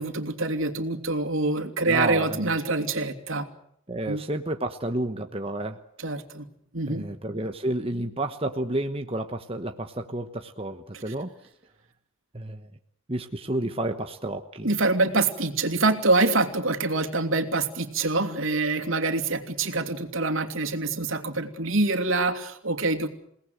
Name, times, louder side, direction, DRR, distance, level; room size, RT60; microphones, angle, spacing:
voice 1, 0.0-3.5 4.1-4.2 6.0-6.5 6.7-7.1 10.9-11.0 14.6-23.1, right 3 dB, 70° right, 4 dB, 2.9 m, -25 dB
voice 2, 1.9-2.5 3.9-5.8 6.8-11.3 12.3-12.7 13.1-14.7, right 1 dB, 25° right, 5 dB, 1.1 m, -31 dB
29.0 x 18.5 x 7.9 m, 0.72 s
head